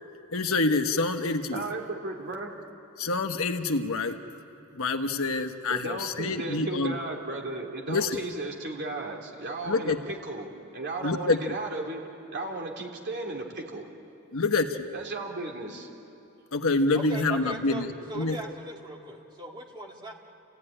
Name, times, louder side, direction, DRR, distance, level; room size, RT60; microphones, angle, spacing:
voice 1, 0.3-1.6 3.0-4.2 4.7-6.9 7.9-8.2 9.7-10.0 11.0-11.4 14.3-14.9 16.5-17.9 18.1-18.4, left 3 dB, 65° left, 6 dB, 1.2 m, -26 dB
voice 2, 1.5-2.5 5.7-13.8 14.9-15.9, right 2 dB, 50° right, 0 dB, 3.3 m, -35 dB
voice 3, 16.9-17.8 18.1-20.1, right 1 dB, 20° right, 0 dB, 2.4 m, -39 dB
29.5 x 16.5 x 10.0 m, 2.7 s
head